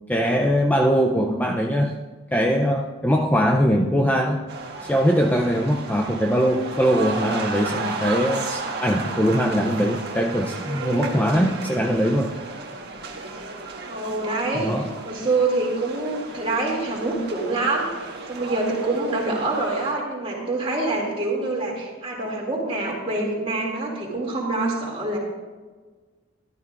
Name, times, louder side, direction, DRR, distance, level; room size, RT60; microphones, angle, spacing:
voice 1, 0.1-2.0 2.3-4.4 4.8-12.3 14.6-14.9, equal, 5° left, 1 dB, 0.4 m, -21 dB
sound 1, 4.5-19.9, right 3 dB, 50° right, 1.4 m, -34 dB
voice 2, 10.6-11.4 13.9-25.2, right 2 dB, 25° right, -3 dB, 2.5 m, -26 dB
14.0 x 12.0 x 2.5 m, 1.4 s
head